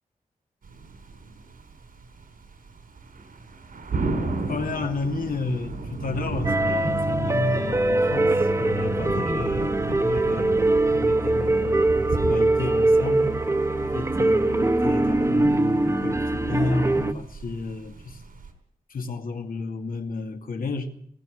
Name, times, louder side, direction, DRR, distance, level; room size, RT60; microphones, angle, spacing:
sound 1, 0.6-18.5, right 3 dB, 90° right, 4.1 m, -35 dB
voice 1, 4.0-13.3 13.8-18.2 18.9-20.9, left 3 dB, 80° left, 2.2 m, -32 dB
sound 2, 6.4-17.1, right 2 dB, 20° right, 1.1 m, -22 dB
19.5 x 17.5 x 7.8 m
wide cardioid pair, 175°, 15 cm